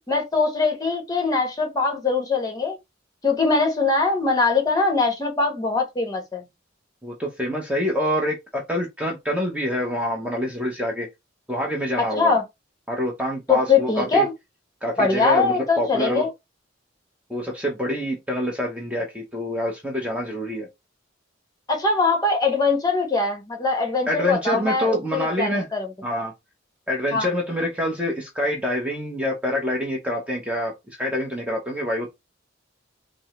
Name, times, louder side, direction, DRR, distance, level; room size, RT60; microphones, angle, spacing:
voice 1, 0.1-2.8 3.2-6.5 12.2-12.4 13.5-14.3 15.0-16.3 21.7-25.9 27.1-27.3, left 3 dB, 20° left, 1.1 m, -22 dB
voice 2, 7.0-11.1 11.5-12.4 12.9-14.2 14.8-16.2 17.3-20.7 24.1-25.7 26.0-26.3 26.9-30.7 31.0-32.1, left 1 dB, 5° right, 0.7 m, -26 dB
5.2 x 2.0 x 3.0 m
head